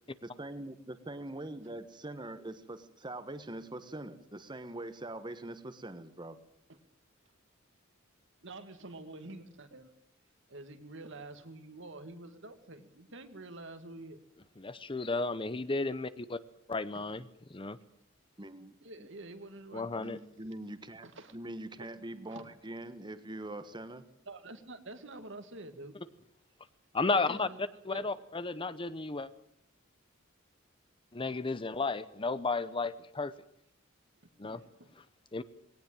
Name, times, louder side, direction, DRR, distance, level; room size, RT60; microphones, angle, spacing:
voice 1, 0.2-6.4 18.4-19.1 20.0-21.1 21.3-24.1, right 1 dB, 20° right, 11 dB, 1.4 m, -43 dB
voice 2, 8.4-9.9 10.5-14.2 16.9-17.1 18.8-20.1 21.0-21.4 22.3-22.5 24.3-25.9 27.1-27.6 27.9-28.1 34.4-34.9, right 2 dB, 65° right, 8 dB, 2.2 m, -47 dB
voice 3, 14.6-16.4 16.7-17.2 17.5-17.8 19.7-20.2 26.9-27.5 27.8-29.3 31.1-33.3 34.4-34.6 35.3-35.4, left 3 dB, 25° left, 14 dB, 0.8 m, -33 dB
19.5 x 18.0 x 9.0 m, 0.72 s
head